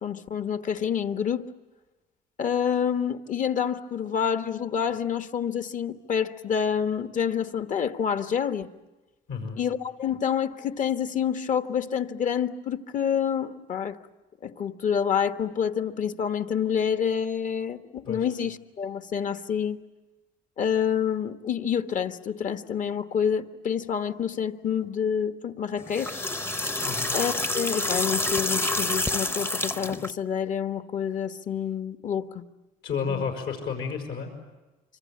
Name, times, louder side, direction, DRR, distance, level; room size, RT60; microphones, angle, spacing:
voice 1, 0.0-1.5 2.4-8.7 9.6-14.0 14.4-19.8 20.6-26.2 27.1-32.4 33.1-33.2, left 8 dB, 50° left, 9 dB, 1.4 m, -28 dB
voice 2, 9.3-9.6 18.1-18.3 26.8-27.1 32.8-34.3, left 6 dB, 75° left, 3 dB, 5.9 m, -31 dB
sound 1, 25.8-30.1, left 2 dB, 15° left, 0.8 m, -28 dB
26.0 x 25.5 x 8.6 m, 1.1 s
cardioid pair, 110°, 17 cm